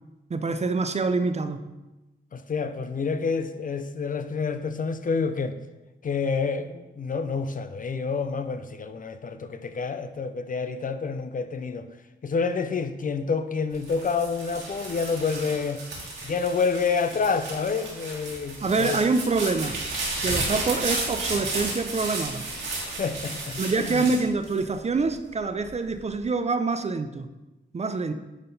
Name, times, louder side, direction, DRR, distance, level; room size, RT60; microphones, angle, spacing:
voice 1, 0.3-1.6 18.6-19.8 20.2-22.5 23.6-27.3 27.7-28.1, right 4 dB, 35° right, 0.5 m, -26 dB
voice 2, 2.3-5.6 6.0-11.9 12.2-15.8 16.2-19.0 20.2-20.5 22.9-24.1, left 5 dB, 45° left, 0.5 m, -28 dB
sound 1, 13.7-25.1 25.6-26.2, right 2 dB, 80° right, 2.4 m, -33 dB
9.7 x 3.7 x 4.0 m
cardioid pair, 60°, 20 cm